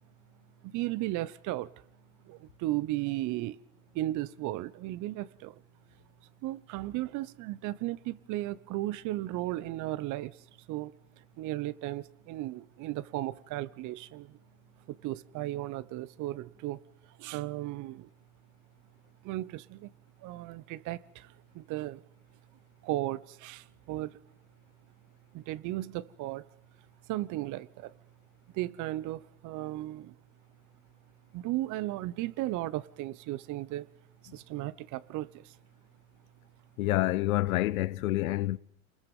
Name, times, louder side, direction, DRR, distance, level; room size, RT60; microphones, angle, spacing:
voice 1, 0.6-1.7 2.2-3.6 3.9-5.6 6.4-10.4 10.7-10.9 11.4-14.4 14.9-16.8 17.1-18.1 19.2-19.9 20.2-22.0 22.8-24.2 25.3-26.4 27.1-27.9 28.5-30.1 31.3-33.9 34.3-35.6, right 16 dB, 45° right, 1.0 m, -35 dB
voice 2, 36.8-38.6, left 16 dB, 70° left, 0.7 m, -28 dB
27.5 x 21.0 x 5.5 m
hypercardioid pair, 100°, 44 cm